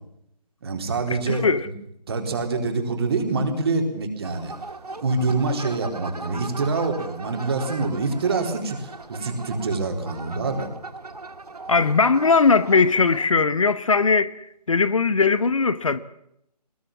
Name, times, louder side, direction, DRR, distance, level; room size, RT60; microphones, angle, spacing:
voice 1, 0.6-1.5 2.1-4.5 5.0-10.7, right 3 dB, 35° right, 4.1 m, -25 dB
voice 2, 1.3-1.7 11.7-14.3 14.7-16.0, left 4 dB, 50° left, 1.0 m, -19 dB
sound 1, 4.2-13.3, right 3 dB, 65° right, 2.1 m, -39 dB
21.0 x 20.5 x 7.4 m
figure-of-eight pair, 150°, 21 cm